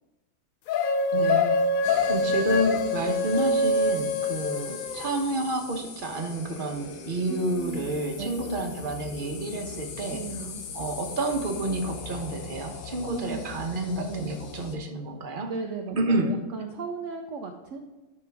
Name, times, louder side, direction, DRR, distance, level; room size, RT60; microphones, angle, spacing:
sound 1, 0.7-5.2, left 2 dB, 70° left, 1.0 m, -25 dB
voice 1, 1.1-1.8 2.1-10.2 10.7-15.5 16.0-16.3, right 2 dB, 40° right, 3 dB, 1.1 m, -29 dB
sound 2, 1.8-14.8, left 5 dB, 90° left, 1.4 m, -40 dB
voice 2, 7.3-7.9 8.2-8.5 10.1-10.7 13.1-13.5 14.1-14.4 15.5-17.8, right 4 dB, 60° right, 3 dB, 1.0 m, -36 dB
11.5 x 6.1 x 3.5 m, 1.1 s
omnidirectional pair, 1.6 m